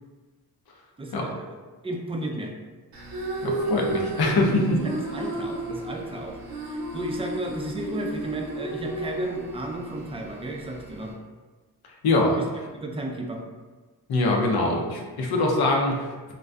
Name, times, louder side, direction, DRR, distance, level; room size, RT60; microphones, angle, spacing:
voice 1, 1.0-1.6 1.8-2.5 4.8-11.2 12.4-12.5 12.7-13.4, right 1 dB, 15° right, 1 dB, 0.3 m, -34 dB
sound 1, 2.9-11.1, right 2 dB, 65° right, 0.6 m, -33 dB
voice 2, 3.4-4.8 12.0-12.4 14.1-16.3, left 2 dB, 75° left, 0 dB, 0.6 m, -23 dB
2.5 x 2.2 x 2.2 m, 1.3 s
cardioid pair, 65°, 38 cm